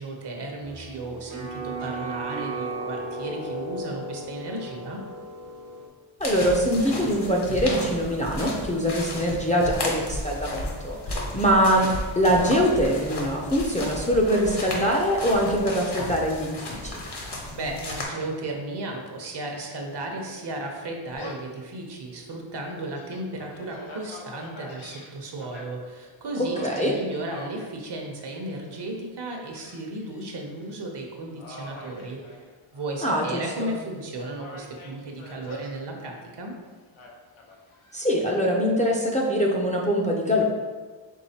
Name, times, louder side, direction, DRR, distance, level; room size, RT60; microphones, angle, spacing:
voice 1, 0.0-5.0 17.5-32.4 32.7-36.6, right 2 dB, 60° right, 1 dB, 0.8 m, -35 dB
sound 1, 0.6-5.9, right 2 dB, 80° right, 1.0 m, -35 dB
sound 2, 6.2-18.0, left 1 dB, 60° left, 1.0 m, -34 dB
voice 2, 6.2-11.9 12.2-17.0 26.4-26.9 33.0-33.7 37.9-40.4, equal, 15° left, -2 dB, 0.4 m, -23 dB
Gull seagull, 21.1-21.6 22.1-22.2 22.7-25.6 26.5-27.7 28.2-28.7 29.5-30.2 30.6-30.8 31.4-32.9 33.3-34.0 34.3-35.7 37.0-38.0, left 2 dB, 90° left, 0.8 m, -44 dB
4.6 x 3.6 x 2.8 m, 1.4 s
wide cardioid pair, 105°, 47 cm